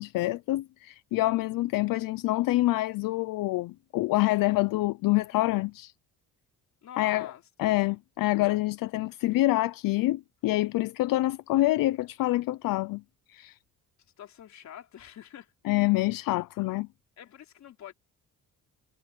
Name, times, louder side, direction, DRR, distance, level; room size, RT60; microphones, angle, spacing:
voice 1, 0.0-5.9 7.0-7.3 7.6-13.0 13.3-13.6 15.6-16.9, left 18 dB, 80° left, 0.7 m, -26 dB
voice 2, 6.8-7.4 14.2-15.5 17.2-17.9, left 10 dB, 55° left, 3.5 m, -45 dB
cardioid pair, 155°, 33 cm